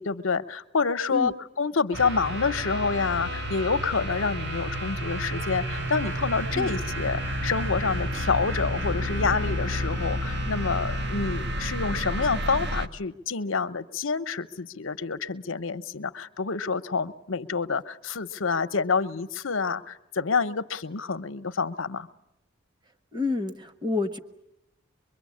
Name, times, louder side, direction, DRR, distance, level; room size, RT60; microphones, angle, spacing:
voice 1, 0.0-22.1, left 4 dB, 75° left, 11 dB, 0.9 m, -28 dB
sound 1, 1.9-12.9, equal, 60° right, 1.2 m, -30 dB
voice 2, 23.1-24.2, left 3 dB, 20° right, 9 dB, 1.2 m, -29 dB
24.5 x 23.0 x 8.5 m, 0.83 s
head